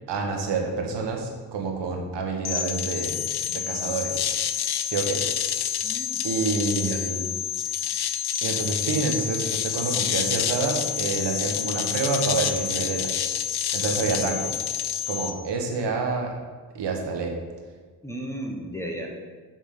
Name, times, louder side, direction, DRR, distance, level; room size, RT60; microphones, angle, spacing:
voice 1, 0.1-3.2 3.5-4.2 4.8-5.2 6.2-7.2 8.4-13.1 13.7-14.6 15.1-16.4 16.7-17.3, right 4 dB, 90° right, 2 dB, 1.3 m, -28 dB
sound 1, 2.5-15.3, left 9 dB, 65° left, 0.6 m, -28 dB
voice 2, 5.8-6.2 6.8-7.0 18.0-19.1, equal, 5° left, -1 dB, 1.2 m, -34 dB
7.9 x 3.6 x 6.7 m, 1.5 s
cardioid pair, 75°, 41 cm